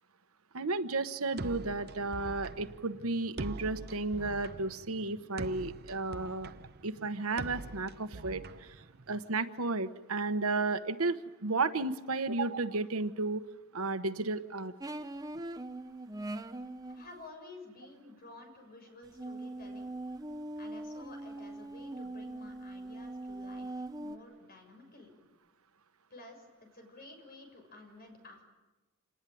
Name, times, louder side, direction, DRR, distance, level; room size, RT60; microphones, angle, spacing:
voice 1, 0.5-6.5 6.8-13.4 13.7-14.7, right 3 dB, 90° right, 11 dB, 1.2 m, -33 dB
sound 1, 1.4-9.3, right 3 dB, 50° right, 0.8 m, -44 dB
sound 2, 14.8-17.1 19.1-24.2, right 2 dB, 20° right, 1.0 m, -41 dB
voice 2, 16.9-19.9 20.6-25.1 26.1-28.4, left 2 dB, 45° left, 4 dB, 6.8 m, -52 dB
27.5 x 19.5 x 9.3 m, 1.2 s
head